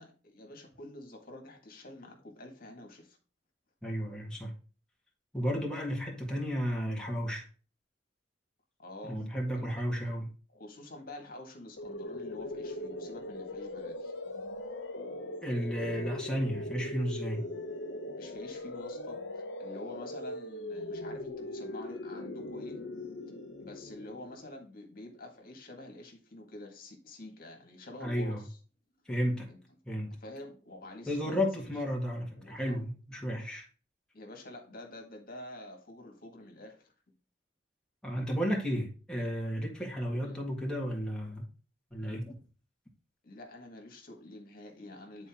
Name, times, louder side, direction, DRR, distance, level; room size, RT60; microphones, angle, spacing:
voice 1, 0.0-3.2 8.8-9.7 10.5-14.1 18.2-22.8 23.6-28.6 29.5-29.6 30.2-31.7 32.4-32.8 34.1-37.1 40.1-40.5 43.2-45.3, left 1 dB, 50° left, 1.8 m, -48 dB
voice 2, 3.8-4.5 5.3-7.5 9.0-10.3 15.4-17.4 28.0-28.5 29.1-29.5 29.9-30.2 31.1-33.7 38.0-41.5 41.9-42.4, equal, 5° left, 1.8 m, -33 dB
sound 1, 11.8-24.6, left 1 dB, 70° left, 0.7 m, -40 dB
9.7 x 4.3 x 3.6 m
head